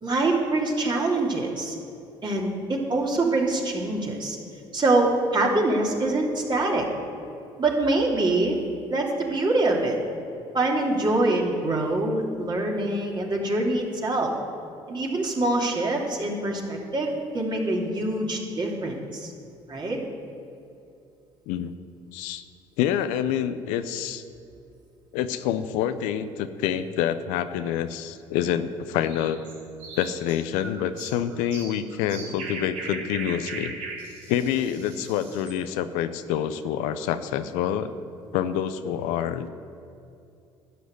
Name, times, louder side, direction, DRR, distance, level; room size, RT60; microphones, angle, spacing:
voice 1, 0.0-1.7 2.2-4.4 4.7-6.8 7.6-8.6 8.9-10.0 10.5-14.3 14.9-19.3 19.7-20.0, right 2 dB, 35° right, -1 dB, 3.0 m, -24 dB
voice 2, 22.1-22.4 22.8-24.2 25.1-29.4 29.9-33.7 34.3-37.9 38.3-39.5, left 9 dB, 80° left, 11 dB, 0.6 m, -27 dB
sound 1, 29.0-35.6, right 3 dB, 80° right, 2.9 m, -39 dB
12.0 x 6.3 x 9.4 m, 2.7 s
hypercardioid pair, 60°, 13 cm